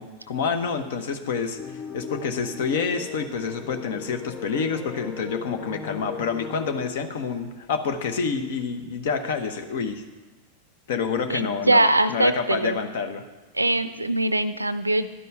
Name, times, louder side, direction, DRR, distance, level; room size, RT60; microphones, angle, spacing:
voice 1, 0.0-10.0 10.9-13.2, left 5 dB, 55° left, 7 dB, 1.0 m, -28 dB
sound 1, 1.5-6.9, left 7 dB, 25° left, 0.5 m, -37 dB
voice 2, 11.3-12.8 13.5-15.1, right 2 dB, 85° right, 14 dB, 0.4 m, -22 dB
11.0 x 5.5 x 7.5 m, 1.2 s
figure-of-eight pair, 90°, 0 cm